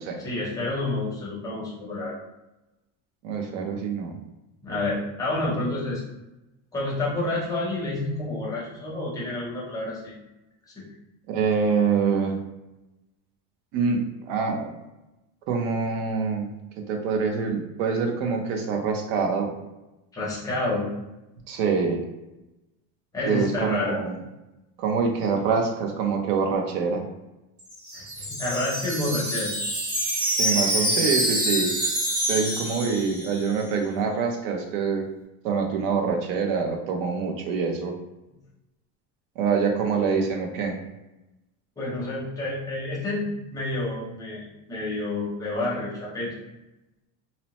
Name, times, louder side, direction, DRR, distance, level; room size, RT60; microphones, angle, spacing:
voice 1, 0.2-2.1 4.6-6.0 6.7-10.2 10.8-10.9 20.1-20.9 23.1-24.0 27.9-29.5 41.8-46.4, left 2 dB, 10° left, -6 dB, 0.5 m, -29 dB
voice 2, 3.2-4.1 11.3-12.4 13.7-14.7 15.5-16.5 16.9-19.5 21.5-22.0 23.3-24.1 24.8-27.0 30.4-31.7 32.3-35.1 35.4-37.9 39.4-40.8, right 5 dB, 75° right, 3 dB, 0.7 m, -25 dB
Wind chime, 27.6-33.6, right 1 dB, 45° right, 1.2 m, -26 dB
2.8 x 2.0 x 2.8 m, 0.98 s
cardioid pair, 170°, 38 cm